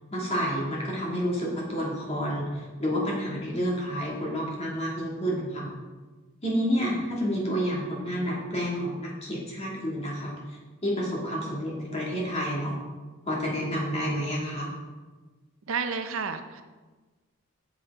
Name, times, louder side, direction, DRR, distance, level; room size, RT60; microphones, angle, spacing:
voice 1, 0.1-5.7 6.4-12.8 13.3-14.7, equal, 30° left, -4 dB, 2.1 m, -29 dB
voice 2, 15.7-16.6, right 5 dB, 65° right, 8 dB, 0.6 m, -31 dB
8.4 x 7.4 x 3.6 m, 1.3 s
head